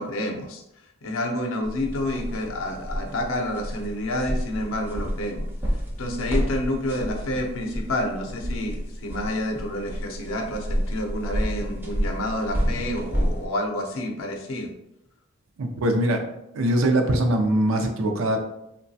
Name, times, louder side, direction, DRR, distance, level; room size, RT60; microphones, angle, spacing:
voice 1, 0.0-5.5 5.7-14.7, left 1 dB, 85° left, 3 dB, 0.5 m, -29 dB
sound 1, 1.6-13.5, equal, 10° right, 0.3 m, -30 dB
voice 2, 15.6-16.2 16.5-18.4, right 1 dB, 85° right, 5 dB, 0.4 m, -22 dB
3.0 x 2.2 x 2.6 m, 0.85 s
head